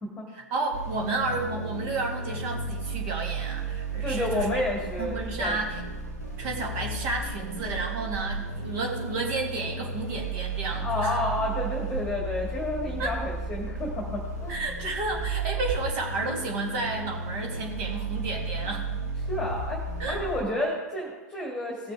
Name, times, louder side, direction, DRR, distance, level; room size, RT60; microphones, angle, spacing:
voice 1, 0.3-4.6 5.0-5.9 6.4-11.2 13.0-13.2 14.5-18.9 20.0-20.2, right 3 dB, 45° right, 0 dB, 2.3 m, -31 dB
sound 1, 0.7-20.4, right 3 dB, 90° right, 2.6 m, -34 dB
voice 2, 4.0-5.5 10.8-14.5 19.3-21.9, left 1 dB, 10° left, -2 dB, 1.9 m, -30 dB
17.0 x 6.5 x 3.6 m, 1.3 s
figure-of-eight pair, 100°, 9 cm